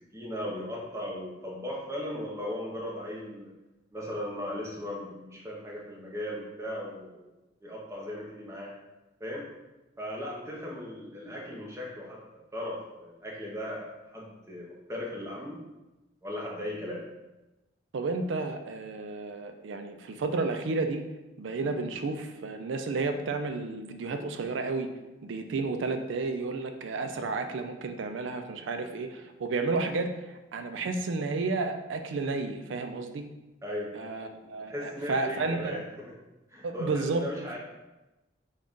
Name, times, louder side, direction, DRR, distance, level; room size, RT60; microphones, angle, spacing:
voice 1, 0.1-3.5 3.9-7.3 7.6-8.7 9.2-9.5 10.0-13.9 14.1-15.6 16.2-17.0 33.6-34.0 34.3-34.4 34.7-36.1 36.5-37.6, left 1 dB, 15° right, -4 dB, 0.7 m, -37 dB
voice 2, 17.9-21.1 21.4-24.9 25.2-33.3 33.9-35.8 36.6-37.2, right 3 dB, 70° right, 7 dB, 0.4 m, -32 dB
3.9 x 2.4 x 3.6 m, 1.0 s
head